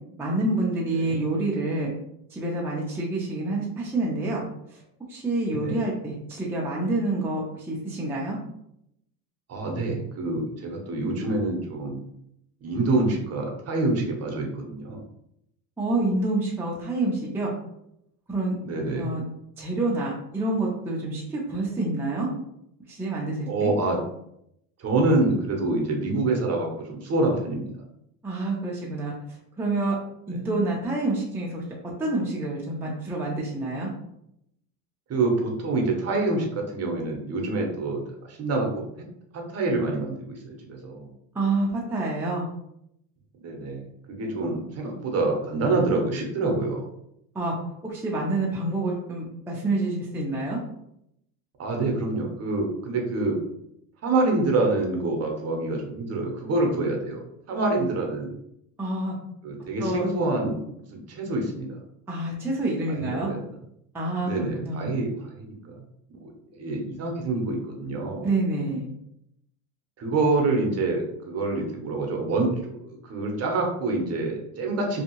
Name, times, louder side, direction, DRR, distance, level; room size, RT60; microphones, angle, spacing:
voice 1, 0.2-1.9 2.3-4.4 5.1-8.4 15.8-17.5 18.3-18.5 19.0-19.2 19.6-22.3 22.9-23.7 28.2-29.1 29.6-30.0 30.3-31.6 32.0-33.9 41.3-42.5 47.3-47.5 47.8-50.6 58.8-59.1 59.8-60.1 62.1-63.3 63.9-64.9 68.2-68.9, right 2 dB, 5° right, -4 dB, 0.5 m, -27 dB
voice 2, 9.5-12.0 12.6-15.0 18.6-19.2 23.4-24.0 24.8-27.7 30.3-30.4 35.1-38.0 38.3-38.8 39.3-41.1 43.4-46.8 51.6-53.4 54.0-57.2 57.5-58.3 59.4-60.6 60.9-61.8 62.9-63.4 64.2-65.8 66.1-68.3 70.0-75.0, right 2 dB, 35° right, 1 dB, 0.8 m, -26 dB
2.7 x 2.4 x 2.9 m, 0.76 s
supercardioid pair, 100°, 43 cm